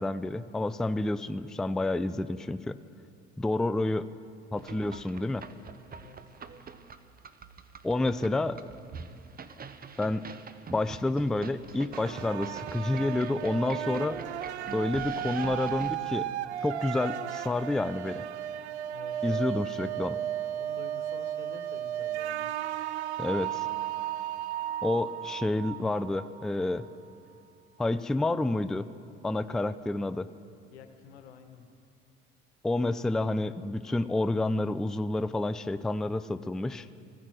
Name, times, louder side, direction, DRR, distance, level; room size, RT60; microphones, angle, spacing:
voice 1, 0.0-2.8 3.4-4.1 4.5-5.4 7.8-8.7 10.0-10.2 10.7-14.2 14.7-16.3 16.6-18.2 19.2-20.2 23.2-23.7 24.8-26.8 27.8-28.9 29.2-30.3 32.6-36.9, left 2 dB, ahead, 13 dB, 0.4 m, -29 dB
sound 1, 4.6-16.0, right 5 dB, 30° right, 0.9 m, -45 dB
sound 2, 11.9-26.9, right 11 dB, 85° right, 0.5 m, -35 dB
voice 2, 18.9-19.6 20.6-22.5 30.7-31.7, left 7 dB, 80° left, 8 dB, 1.2 m, -49 dB
16.0 x 14.5 x 6.2 m, 2.5 s
hypercardioid pair, 60°, 32 cm